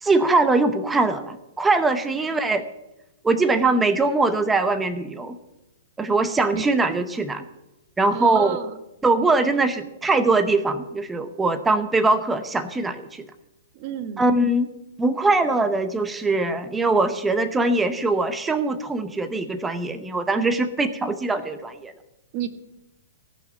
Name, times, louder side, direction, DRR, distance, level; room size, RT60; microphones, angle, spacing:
voice 1, 0.0-2.6 3.2-5.4 6.0-7.4 8.0-8.6 9.0-13.3 14.2-14.7 15.0-21.9, right 3 dB, 10° right, 11 dB, 0.8 m, -22 dB
voice 2, 8.1-8.7 13.7-14.3 22.3-22.5, right 9 dB, 45° right, 9 dB, 1.3 m, -30 dB
16.5 x 5.9 x 8.0 m, 0.95 s
hypercardioid pair, 130°, 0 cm